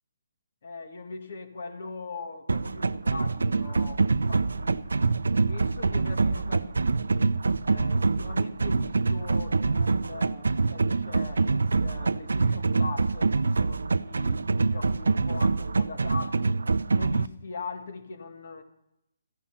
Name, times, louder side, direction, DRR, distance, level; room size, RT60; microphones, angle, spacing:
voice 1, 0.6-4.9 5.2-7.2 7.6-16.6 16.9-18.6, left 4 dB, 60° left, 7 dB, 1.9 m, -41 dB
sound 1, 2.5-17.3, right 3 dB, 85° right, 0.5 m, -25 dB
sound 2, 3.0-9.8, equal, 10° left, 2.8 m, -55 dB
14.5 x 10.0 x 5.8 m, 0.84 s
hypercardioid pair, 155°, 0 cm